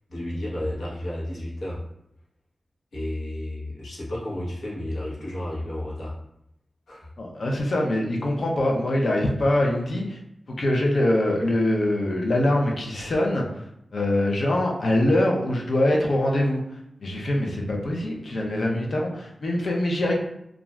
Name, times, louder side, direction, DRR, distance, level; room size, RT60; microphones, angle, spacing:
voice 1, 0.1-1.8 2.9-6.2 6.9-7.1, left 1 dB, 90° left, -7 dB, 1.0 m, -32 dB
voice 2, 7.2-10.2 10.5-13.6 13.9-20.1, left 1 dB, 70° left, -1 dB, 0.6 m, -23 dB
2.5 x 2.4 x 3.1 m, 0.79 s
cardioid pair, 60°, 0 cm